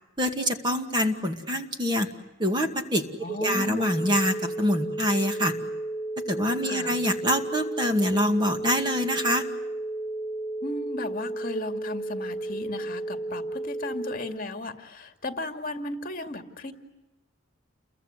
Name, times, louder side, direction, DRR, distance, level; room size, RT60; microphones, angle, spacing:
voice 1, 0.2-2.1 2.4-5.5 6.3-9.4, equal, 20° right, 5 dB, 2.3 m, -25 dB
voice 2, 3.2-3.9 6.6-6.9 10.6-16.7, left 2 dB, 45° left, 6 dB, 2.4 m, -35 dB
sound 1, 3.4-14.2, right 2 dB, 55° right, 2.9 m, -33 dB
29.5 x 23.0 x 8.3 m, 1.1 s
head